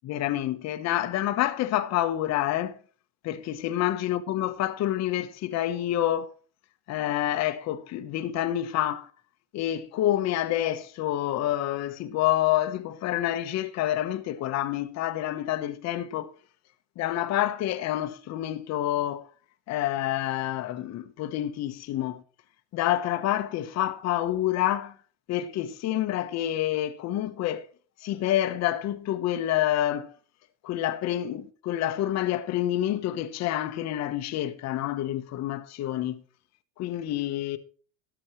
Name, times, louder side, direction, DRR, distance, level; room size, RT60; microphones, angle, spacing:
voice 1, 0.0-2.8 3.2-6.3 6.9-9.1 9.5-16.3 17.0-19.3 19.7-22.2 22.7-25.0 25.3-27.7 28.0-30.1 30.6-36.2 36.8-37.6, left 13 dB, 45° left, 1.3 m, -28 dB
13.5 x 11.5 x 3.2 m
supercardioid pair, 120°, 38 cm